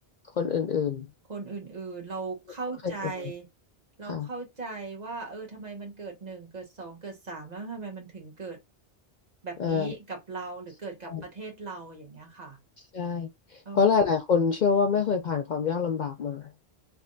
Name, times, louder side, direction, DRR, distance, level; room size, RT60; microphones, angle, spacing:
voice 1, 0.4-1.1 4.1-4.3 9.6-9.9 11.0-11.2 12.9-13.3 13.7-16.4, left 6 dB, 55° left, 0.6 m, -25 dB
voice 2, 1.3-3.5 4.0-8.6 9.4-12.6 13.6-13.8, right 4 dB, 40° right, 1.1 m, -38 dB
3.4 x 3.3 x 2.6 m
omnidirectional pair, 1.1 m